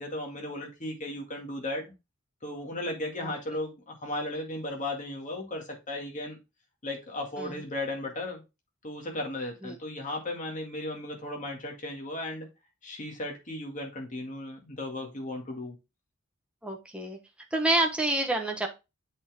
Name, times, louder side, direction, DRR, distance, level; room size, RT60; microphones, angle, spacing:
voice 1, 0.0-1.8 2.4-6.4 6.8-8.4 8.8-12.5 12.8-15.8, left 1 dB, 35° left, 2.0 m, -35 dB
voice 2, 16.6-17.2 17.5-18.7, right 2 dB, 5° right, 1.1 m, -28 dB
7.8 x 4.2 x 3.5 m
head